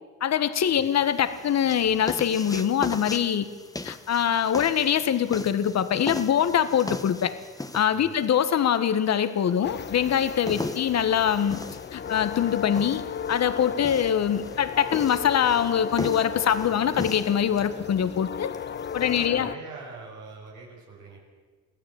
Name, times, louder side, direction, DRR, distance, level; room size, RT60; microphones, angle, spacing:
voice 1, 0.2-3.5 3.8-7.3 7.7-11.6 11.9-13.0 13.3-18.5 18.9-19.5, left 9 dB, 60° left, 11 dB, 1.6 m, -23 dB
sound 1, 0.7-19.3, left 2 dB, 10° left, 1.4 m, -39 dB
sound 2, 9.6-19.6, left 8 dB, 35° left, 0.7 m, -36 dB
voice 2, 19.0-21.2, right 4 dB, 80° right, -2 dB, 6.4 m, -43 dB
24.0 x 16.0 x 8.9 m, 1.4 s
cardioid pair, 90°, 30 cm